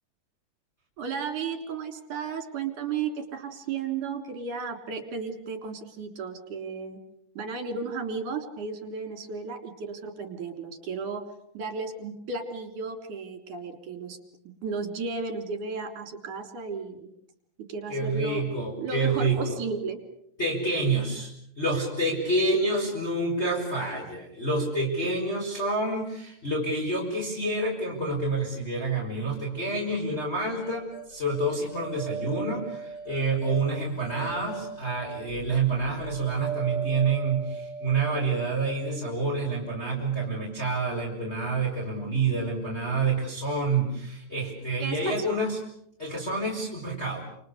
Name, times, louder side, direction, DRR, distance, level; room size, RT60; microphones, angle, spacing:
voice 1, 1.0-7.0 7.3-11.2 11.5-14.2 14.4-17.1 17.7-18.4 18.8-20.0 44.8-45.4, right 5 dB, 50° right, 6 dB, 4.8 m, -34 dB
voice 2, 17.9-19.5 20.4-21.3 21.6-45.6 46.0-47.2, right 3 dB, 15° left, -2 dB, 6.1 m, -28 dB
sound 1, 30.6-39.8, right 4 dB, 70° left, 4.5 m, -38 dB
29.0 x 28.5 x 6.8 m, 0.71 s
omnidirectional pair, 4.8 m